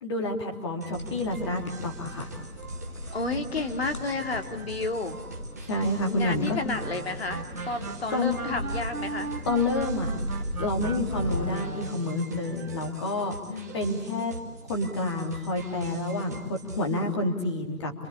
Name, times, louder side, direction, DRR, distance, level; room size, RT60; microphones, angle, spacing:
voice 1, 0.0-2.3 5.6-6.6 7.6-7.8 8.1-8.4 9.4-10.1 10.5-13.3 13.7-14.3 14.7-17.9, left 2 dB, 20° left, 2 dB, 3.1 m, -29 dB
sound 1, 0.8-17.1, right 2 dB, 10° right, 1.2 m, -43 dB
sound 2, 0.9-11.6, equal, 80° left, 6.2 m, -38 dB
voice 2, 3.1-5.2 6.0-9.3 13.5-13.7, left 3 dB, 45° left, 5 dB, 2.8 m, -31 dB
sound 3, 6.7-12.3, right 3 dB, 70° right, 1.8 m, -38 dB
28.0 x 24.5 x 8.5 m, 1.0 s
figure-of-eight pair, 165°, 44 cm